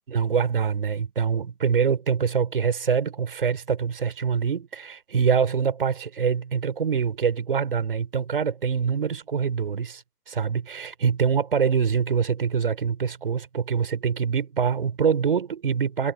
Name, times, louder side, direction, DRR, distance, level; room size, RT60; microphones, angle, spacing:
voice 1, 0.1-16.1, right 6 dB, 35° right, 5.2 m, -25 dB
figure-of-eight pair, 150°, 47 cm